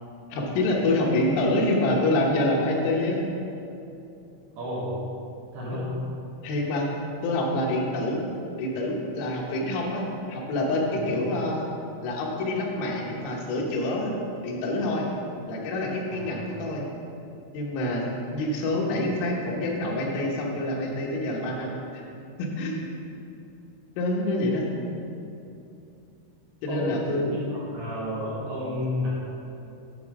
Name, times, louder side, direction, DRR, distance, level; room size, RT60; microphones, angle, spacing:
voice 1, 0.3-3.2 5.7-5.8 6.4-6.9 7.2-8.2 8.6-11.7 12.0-14.2 14.4-15.1 15.5-16.9 17.5-22.1 22.4-22.9 24.0-24.7 26.6-27.3, left 1 dB, 85° left, -2 dB, 3.7 m, -26 dB
voice 2, 4.6-5.0 5.5-6.0 11.0-11.2 16.1-16.4 26.7-29.1, equal, 70° right, -8 dB, 2.6 m, -31 dB
9.4 x 6.9 x 3.6 m, 2.7 s
omnidirectional pair, 5.8 m